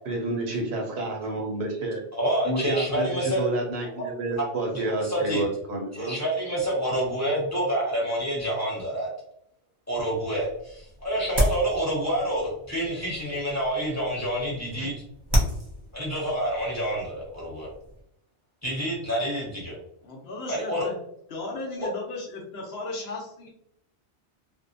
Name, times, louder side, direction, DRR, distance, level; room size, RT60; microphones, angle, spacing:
voice 1, 0.1-2.0 2.4-6.2 14.8-14.9, right 2 dB, 65° right, 0 dB, 0.9 m, -29 dB
voice 2, 2.1-3.4 4.0-4.1 4.4-4.5 4.7-5.4 6.0-9.1 9.9-14.9 15.9-17.7 18.6-19.8 20.5-20.9 21.8-21.9, right 1 dB, 15° left, -5 dB, 0.9 m, -28 dB
sound 1, 10.3-18.0, equal, 35° right, 0.4 m, -32 dB
voice 3, 20.0-21.0 21.3-23.5, left 3 dB, 65° left, -1 dB, 0.8 m, -36 dB
2.6 x 2.1 x 2.5 m, 0.73 s
omnidirectional pair, 1.2 m